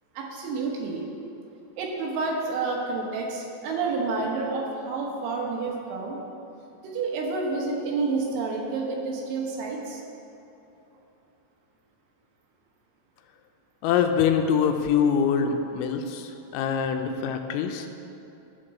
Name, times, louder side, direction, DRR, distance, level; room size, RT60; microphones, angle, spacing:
voice 1, 0.2-1.1 1.8-6.2 6.8-10.0, right 3 dB, 80° right, -1 dB, 3.6 m, -29 dB
voice 2, 13.8-17.9, left 7 dB, 85° left, 5 dB, 3.0 m, -24 dB
11.5 x 4.2 x 7.6 m, 2.9 s
omnidirectional pair, 5.4 m